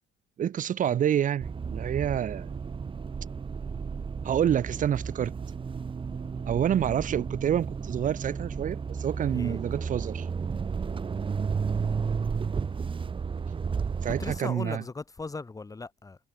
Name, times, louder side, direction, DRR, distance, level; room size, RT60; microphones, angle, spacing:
voice 1, 0.4-2.5 4.2-5.3 6.5-10.3 14.0-14.8, right 9 dB, 50° right, 2.4 m, -28 dB
sound 1, 1.4-14.4, right 5 dB, 30° right, 2.9 m, -33 dB
voice 2, 9.3-9.6 14.2-16.2, left 3 dB, 20° left, 5.8 m, -37 dB
cardioid pair, 110°, 17 cm